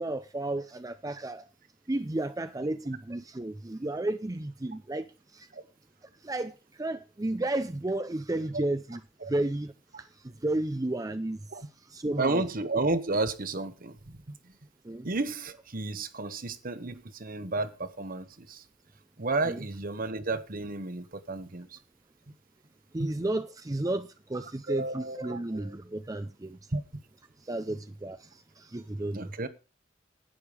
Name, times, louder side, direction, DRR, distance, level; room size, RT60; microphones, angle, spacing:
voice 1, 0.0-1.5 1.9-5.1 5.3-5.5 6.2-9.0 9.3-10.1 10.4-11.4 11.9-12.4 14.8-15.1 19.5-19.6 22.9-26.6 27.4-29.3, right 2 dB, 20° right, 0.5 m, -32 dB
voice 2, 12.2-14.4 15.0-18.6 19.2-21.8 23.0-23.1 24.7-25.7 26.7-26.8 29.1-29.5, right 2 dB, 50° right, 1.2 m, -32 dB
11.5 x 9.0 x 5.0 m
head